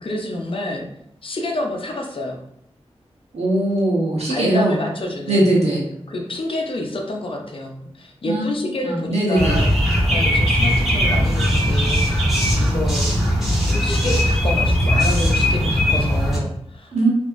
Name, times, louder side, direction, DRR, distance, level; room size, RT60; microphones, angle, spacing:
voice 1, 0.0-0.9 1.2-2.4 4.3-5.5 6.1-9.7 10.1-13.1 13.6-17.1, left 1 dB, 55° left, 0 dB, 0.7 m, -28 dB
voice 2, 3.3-4.8 5.3-5.9 8.3-8.5 8.8-9.6 16.9-17.1, right 1 dB, 75° right, -5 dB, 1.0 m, -19 dB
sound 1, 9.4-16.4, equal, ahead, 1.3 m, -19 dB
5.1 x 2.7 x 2.6 m, 0.72 s
wide cardioid pair, 100°, 11 cm